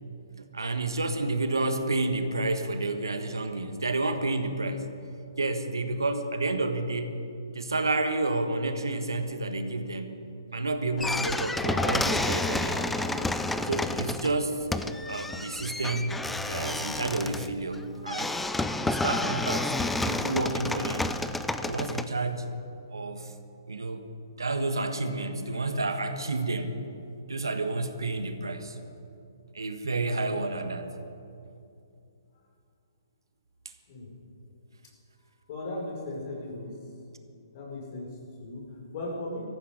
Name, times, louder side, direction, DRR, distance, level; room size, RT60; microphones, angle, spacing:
voice 1, 0.4-4.9 5.4-7.2 7.5-10.1 10.5-13.1 13.6-14.6 15.1-18.4 18.8-21.1 21.6-22.5 22.9-23.3 23.7-24.1 24.4-26.8 27.3-28.8 29.5-30.9, right 2 dB, 85° right, 7 dB, 1.5 m, -30 dB
sound 1, 11.0-22.0, left 2 dB, 5° left, 0.5 m, -30 dB
voice 2, 35.2-36.8 37.5-39.4, left 2 dB, 45° left, -1 dB, 5.0 m, -37 dB
17.0 x 14.0 x 5.2 m, 2.6 s
figure-of-eight pair, 130°, 2 cm